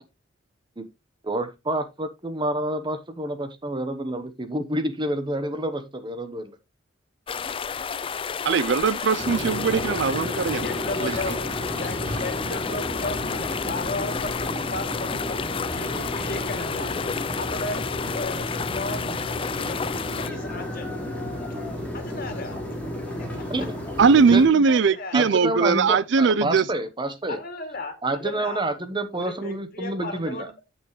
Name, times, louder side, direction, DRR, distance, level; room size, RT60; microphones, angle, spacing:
voice 1, 1.2-6.5 23.5-23.8 24.1-24.6 25.1-27.4 28.0-30.5, right 1 dB, 25° right, 1.0 m, -28 dB
sound 1, 7.3-20.3, left 6 dB, 30° left, 0.4 m, -31 dB
voice 2, 8.4-10.7 11.0-11.3 24.0-26.7, right 5 dB, 65° right, 0.5 m, -20 dB
sound 2, 9.2-24.5, left 1 dB, 5° left, 4.0 m, -32 dB
voice 3, 10.6-11.5 11.8-15.4 15.7-16.9 17.4-20.9 21.9-22.6 23.2-23.5 24.6-25.4 27.3-28.6 29.1-30.5, left 2 dB, 50° left, 2.6 m, -35 dB
9.1 x 8.2 x 3.1 m
head